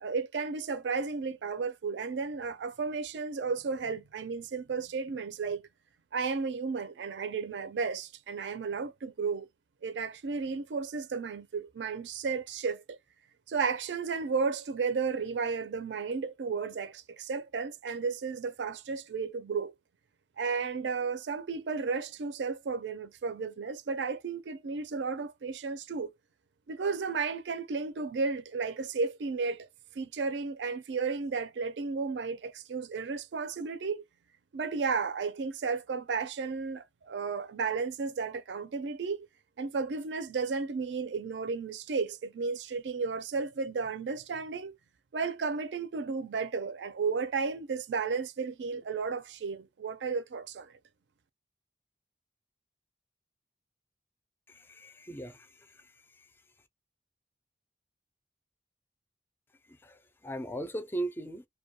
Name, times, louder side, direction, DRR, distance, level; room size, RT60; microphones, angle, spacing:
voice 1, 0.0-5.7 6.1-9.5 9.8-13.0 13.5-19.7 20.4-26.1 26.7-29.7 29.9-34.0 34.5-39.3 39.6-44.8 45.1-50.7, right 5 dB, 80° right, 0.4 m, -33 dB
voice 2, 54.5-56.4 59.6-61.5, right 1 dB, 15° left, 0.3 m, -39 dB
2.2 x 2.2 x 2.7 m
head